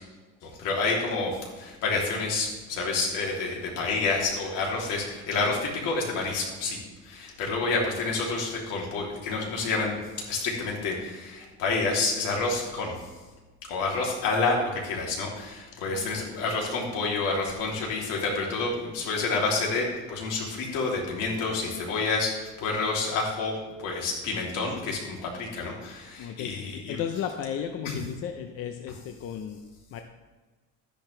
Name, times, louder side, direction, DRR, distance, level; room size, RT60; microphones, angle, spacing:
voice 1, 0.4-13.1 13.7-27.0 27.8-28.0, left 3 dB, 75° left, -2 dB, 3.2 m, -29 dB
voice 2, 15.8-16.1 21.7-21.8 26.2-29.6 29.9-30.0, left 8 dB, 45° left, 5 dB, 0.7 m, -35 dB
12.5 x 10.5 x 3.4 m, 1.3 s
cardioid pair, 165°, 33 cm